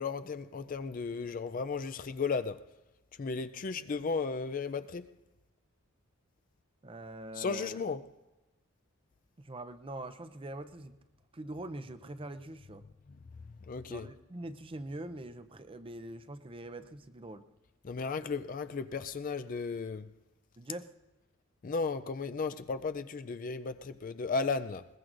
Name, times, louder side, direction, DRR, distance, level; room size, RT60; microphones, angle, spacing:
voice 1, 0.0-2.6 3.2-5.1 7.4-8.0 13.7-14.1 17.8-20.1 21.6-24.9, left 4 dB, 40° left, 0.4 m, -35 dB
voice 2, 6.8-7.8 9.4-10.9 11.3-12.8 13.9-17.5 20.6-20.9, right 1 dB, 25° right, 0.6 m, -43 dB
21.0 x 20.5 x 2.6 m
head